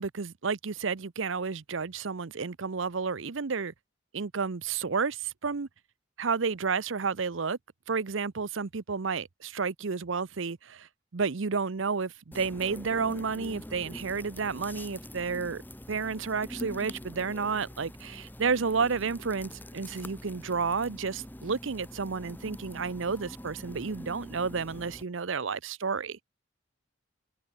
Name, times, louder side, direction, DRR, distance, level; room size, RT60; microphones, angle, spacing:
voice 1, 0.0-3.7 4.1-5.7 6.2-7.6 7.9-10.9 11.1-15.6 15.9-26.2, right 5 dB, 75° right, 0.7 m, -31 dB
sound 1, 12.3-25.0, equal, 10° left, 2.5 m, -44 dB
head